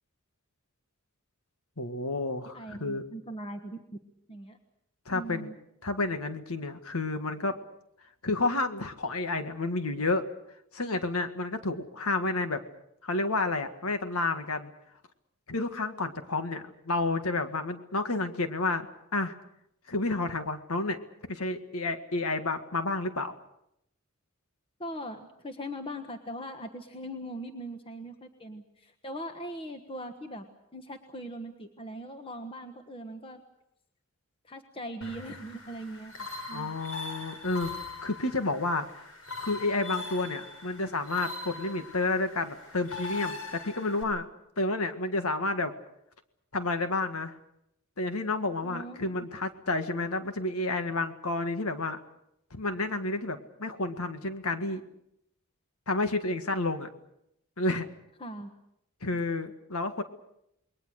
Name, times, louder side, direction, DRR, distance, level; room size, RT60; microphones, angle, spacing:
voice 1, 1.8-3.0 5.1-5.5 5.8-7.6 8.2-10.2 10.7-12.6 13.0-14.7 15.5-18.9 19.1-19.3 19.9-21.0 21.3-23.3 36.5-37.7 38.0-38.9 39.4-44.3 44.6-45.7 46.5-47.4 48.0-52.0 52.5-54.8 55.9-56.9 57.6-57.9 59.0-60.0, left 2 dB, 90° left, 8 dB, 1.8 m, -30 dB
voice 2, 2.5-3.8 4.3-4.6 5.1-5.6 24.8-33.4 34.4-36.7 48.6-49.1 58.2-58.5 59.1-59.2, equal, 25° left, 6 dB, 1.4 m, -40 dB
sound 1, 35.0-44.0, left 3 dB, 75° left, 5.9 m, -41 dB
28.5 x 21.5 x 6.5 m, 0.79 s
head